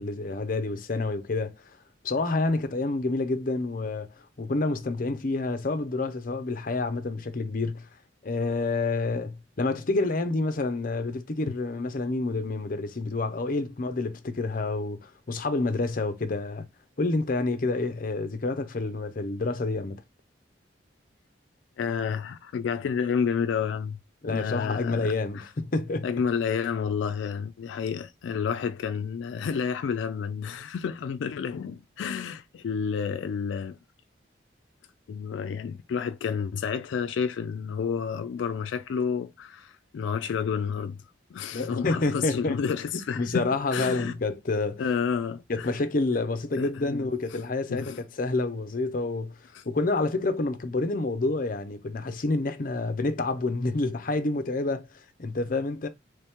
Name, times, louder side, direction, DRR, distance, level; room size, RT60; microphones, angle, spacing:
voice 1, 0.0-1.5 2.0-7.9 8.2-16.6 17.0-20.0 24.2-26.1 41.5-42.6 43.2-44.8 45.5-49.4 49.7-55.9, left 3 dB, 50° left, 0.6 m, -28 dB
voice 2, 21.8-24.0 24.3-25.5 26.0-33.8 35.1-41.0 41.3-44.1 44.8-45.7 46.6-47.1 47.7-48.0 49.5-49.6, left 6 dB, 90° left, 0.3 m, -30 dB
3.2 x 2.9 x 3.5 m
head